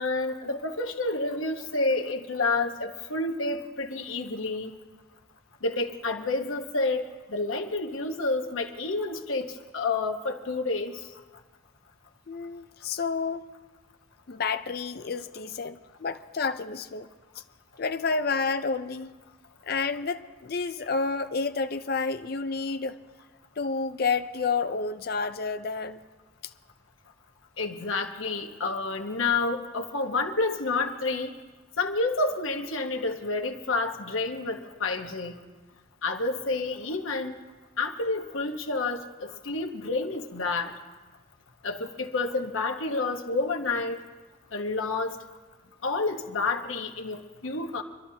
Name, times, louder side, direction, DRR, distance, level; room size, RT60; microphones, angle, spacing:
voice 1, 0.0-4.7 5.6-11.1 27.6-31.3 31.8-35.4 36.0-37.3 37.8-40.7 41.6-44.0 44.5-45.2 45.8-47.8, left 3 dB, 90° left, 4 dB, 1.1 m, -29 dB
voice 2, 12.3-13.4 14.3-17.1 17.8-19.2 19.6-23.0 23.6-26.0, left 4 dB, 50° left, 9 dB, 0.5 m, -30 dB
26.0 x 12.0 x 2.8 m, 1.3 s
head